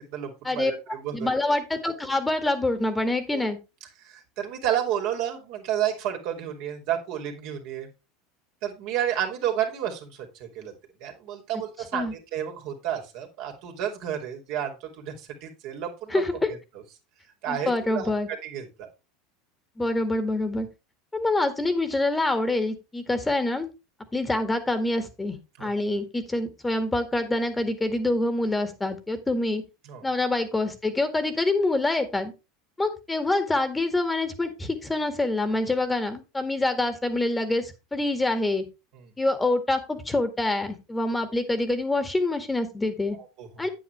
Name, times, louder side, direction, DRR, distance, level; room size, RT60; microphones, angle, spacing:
voice 1, 0.1-1.3 3.3-3.5 4.0-7.9 8.6-10.7 11.0-16.2 17.4-18.1 18.4-18.9 25.6-25.7 29.8-30.0 39.0-39.1 43.1-43.6, right 10 dB, 60° right, 2 dB, 2.8 m, -31 dB
voice 2, 1.1-3.6 11.9-12.1 16.1-16.5 17.5-18.3 19.8-20.7 21.1-23.7 24.1-29.6 30.0-32.3 32.8-38.6 39.2-43.2 43.6-43.7, left 2 dB, 15° left, 9 dB, 1.8 m, -26 dB
9.1 x 8.6 x 3.3 m, 0.27 s
hypercardioid pair, 85°, 0 cm